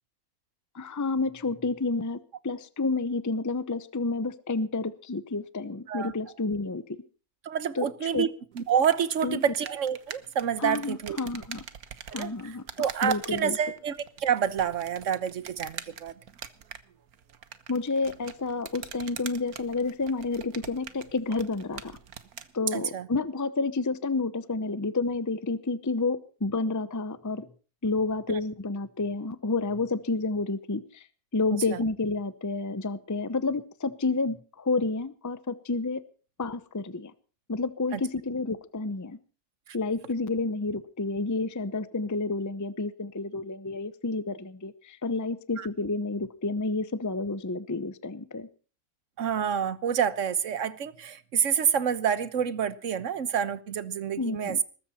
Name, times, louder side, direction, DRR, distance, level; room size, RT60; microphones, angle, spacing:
voice 1, 0.7-6.8 7.7-7.9 8.1-8.3 9.2-9.4 10.6-11.6 12.1-12.6 13.0-13.6 17.7-22.0 22.5-27.5 27.8-31.0 31.3-36.0 36.4-37.1 37.5-39.2 39.7-48.5 54.2-54.6, left 3 dB, 15° left, 0.6 m, -30 dB
voice 2, 7.4-8.3 8.5-11.2 12.1-12.4 12.8-16.1 22.7-23.1 28.3-28.4 31.5-31.8 37.9-38.0 39.7-39.8 45.6-45.7 49.2-54.6, right 8 dB, 60° right, 1.3 m, -28 dB
sound 1, 8.5-22.5, right 8 dB, 75° right, 1.6 m, -44 dB
21.0 x 13.5 x 4.3 m
omnidirectional pair, 1.6 m